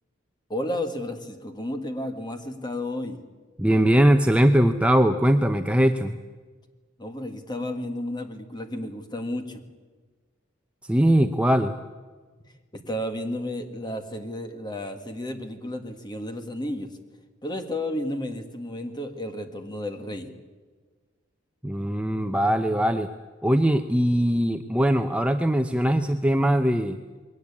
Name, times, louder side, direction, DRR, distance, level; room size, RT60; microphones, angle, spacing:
voice 1, 0.5-3.2 7.0-9.6 12.7-16.9 17.4-20.3, left 1 dB, 20° left, 6 dB, 1.7 m, -32 dB
voice 2, 3.6-6.2 10.9-11.8 21.6-23.1 23.4-27.0, right 1 dB, 5° right, 6 dB, 0.6 m, -21 dB
21.5 x 17.5 x 8.6 m, 1.4 s
head